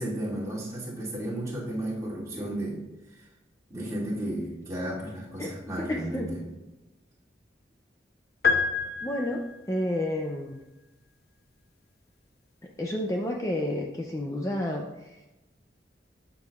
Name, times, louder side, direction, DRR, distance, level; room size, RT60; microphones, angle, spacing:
voice 1, 0.0-2.8 3.7-6.4, right 1 dB, 20° right, -8 dB, 2.8 m, -33 dB
voice 2, 5.4-6.3 9.0-9.4 9.7-10.6 12.8-15.4, left 1 dB, 15° left, 0 dB, 0.5 m, -31 dB
sound 1, 8.4-9.8, left 5 dB, 55° left, 0.7 m, -27 dB
12.0 x 7.0 x 2.4 m, 1.0 s
head